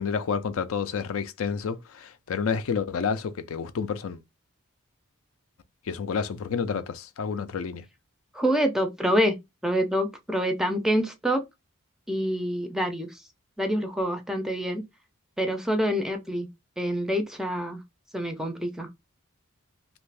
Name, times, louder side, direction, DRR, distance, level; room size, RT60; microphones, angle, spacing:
voice 1, 0.0-4.2 5.9-7.8, left 6 dB, 75° left, 0.4 m, -29 dB
voice 2, 8.3-9.3 9.6-11.4 12.1-13.2 13.6-14.8 15.4-16.5 16.8-17.8 18.1-18.9, equal, ahead, 0.4 m, -26 dB
2.6 x 2.4 x 3.2 m
head